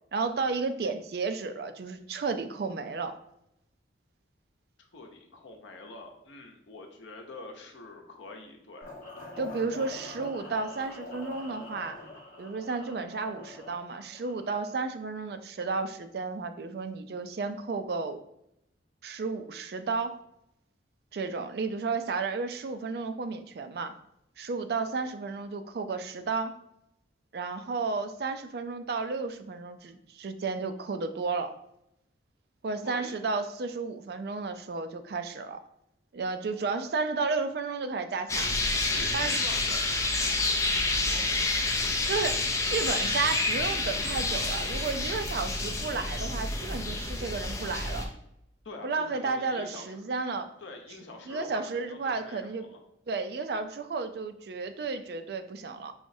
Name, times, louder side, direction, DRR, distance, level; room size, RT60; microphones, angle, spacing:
voice 1, 0.1-3.1 9.4-12.0 12.4-18.2 19.0-20.2 21.1-24.0 24.4-26.6 27.3-31.5 32.6-35.6 36.1-38.6 39.1-39.5 42.1-48.1 48.8-50.5 51.3-52.7 53.1-55.9, right 4 dB, 55° right, 9 dB, 0.4 m, -32 dB
voice 2, 4.8-8.9 32.8-33.2 38.8-39.9 41.0-41.3 48.6-50.0 50.6-52.8, left 3 dB, 85° left, 2 dB, 0.7 m, -45 dB
sound 1, 8.8-14.8, left 2 dB, 45° left, 1.0 m, -45 dB
sound 2, 38.3-48.1, left 2 dB, 15° left, 0.4 m, -29 dB
4.8 x 3.0 x 2.7 m, 0.79 s
head